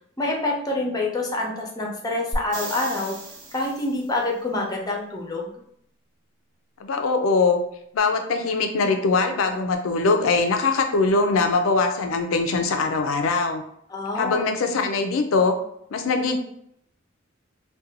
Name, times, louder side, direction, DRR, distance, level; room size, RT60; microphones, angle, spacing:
voice 1, 0.2-3.2 3.5-5.5 13.9-14.5, left 2 dB, 20° left, -1 dB, 0.5 m, -26 dB
sound 1, 2.3-4.2 8.0-8.1, right 1 dB, 40° right, 0.6 m, -34 dB
voice 2, 6.8-7.6 7.9-13.6 14.2-15.5 15.9-16.4, left 3 dB, 80° left, 6 dB, 0.4 m, -22 dB
2.5 x 2.2 x 2.7 m, 0.71 s
head